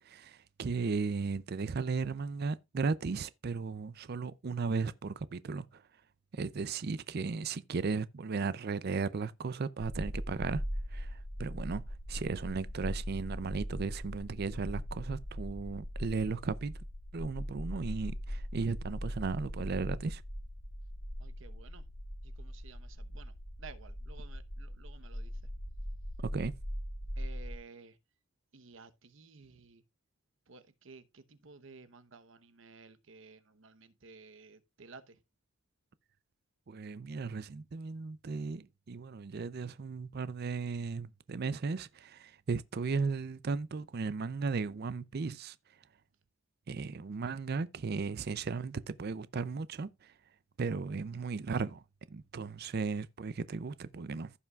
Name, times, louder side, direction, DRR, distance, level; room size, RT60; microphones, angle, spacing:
voice 1, 0.1-5.8 6.3-10.6 10.9-11.8 12.1-16.7 17.1-20.2 26.3-26.5 36.7-45.6 46.7-50.1 50.6-51.8 52.1-54.3, right 4 dB, 50° right, 0.5 m, -36 dB
sound 1, 9.8-27.6, equal, 70° left, 4.7 m, -40 dB
voice 2, 21.2-21.9 22.2-25.4 27.2-28.0 28.5-29.8 30.5-35.2, right 4 dB, 65° right, 0.9 m, -54 dB
15.0 x 5.7 x 2.3 m
head